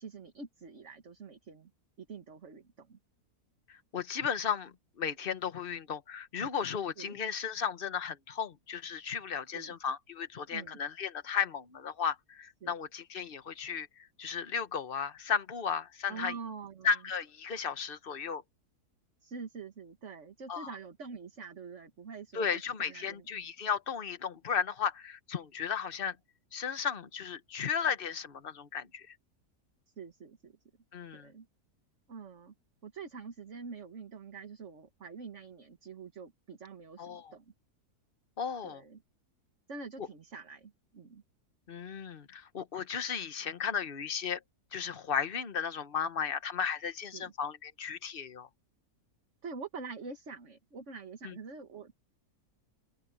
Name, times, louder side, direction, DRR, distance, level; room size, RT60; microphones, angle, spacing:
voice 1, 0.0-1.7 2.0-3.0 7.0-7.2 9.5-9.8 10.5-10.8 12.6-12.7 16.1-16.9 19.2-23.3 30.0-30.6 31.1-31.5 32.1-32.5 32.8-37.5 38.6-39.0 39.7-41.2 47.1-47.3 49.4-51.9, right 5 dB, 50° right, 1.9 m, -45 dB
voice 2, 3.7-16.3 16.8-18.4 20.5-20.7 22.3-26.2 26.5-29.1 30.9-31.3 37.0-37.3 38.4-38.8 41.7-44.4 44.7-48.5 51.2-51.3, left 7 dB, 40° left, 1.2 m, -35 dB
open air
omnidirectional pair, 1.6 m